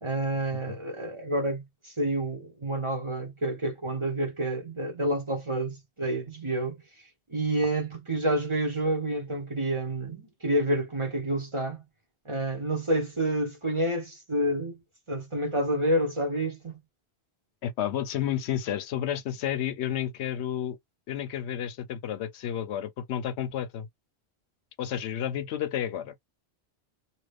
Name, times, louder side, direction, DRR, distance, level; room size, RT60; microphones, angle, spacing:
voice 1, 0.0-6.8 7.3-11.8 12.2-14.8 15.1-16.8, right 1 dB, 30° right, 1.0 m, -29 dB
voice 2, 17.6-20.8 21.1-23.9 24.8-26.1, left 10 dB, 80° left, 0.9 m, -31 dB
2.7 x 2.4 x 3.4 m
omnidirectional pair, 1.1 m